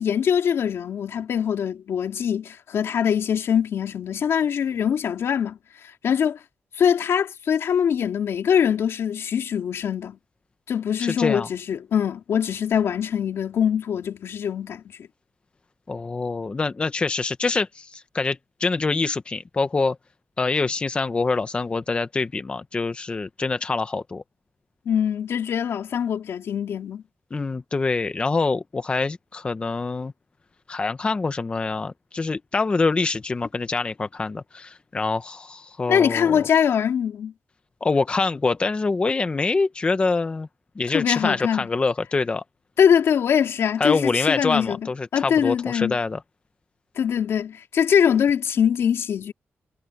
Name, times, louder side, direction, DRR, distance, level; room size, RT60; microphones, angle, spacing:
voice 1, 0.0-5.6 6.0-6.4 6.8-10.2 10.7-15.1 24.8-27.0 35.9-37.3 40.9-41.7 42.8-44.8 45.1-46.0 47.0-49.3, left 8 dB, 80° left, 3.3 m, -23 dB
voice 2, 11.0-11.5 15.9-20.0 20.4-24.2 27.3-30.1 30.7-36.4 37.8-40.5 40.8-42.4 43.8-46.2, left 3 dB, 25° left, 0.7 m, -25 dB
wide cardioid pair, 160°, 4 cm